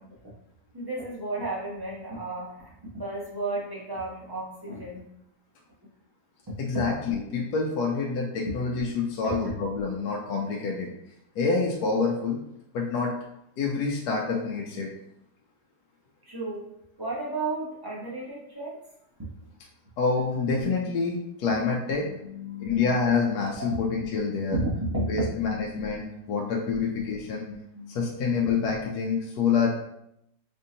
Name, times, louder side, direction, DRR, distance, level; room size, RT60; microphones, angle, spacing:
voice 1, 0.7-5.0 9.2-9.5 16.2-16.7 17.0-18.8 19.2-19.3 22.0-22.9 23.6-23.8 24.5-25.6 26.3-26.5 27.5-28.0, right 2 dB, 30° right, -5 dB, 0.4 m, -33 dB
voice 2, 6.6-10.9 11.4-12.4 12.7-13.1 13.6-14.9 20.0-22.1 22.6-24.6 25.1-27.5 27.9-29.7, left 5 dB, 80° left, -1 dB, 1.1 m, -27 dB
4.3 x 2.6 x 2.7 m, 0.79 s
omnidirectional pair, 1.7 m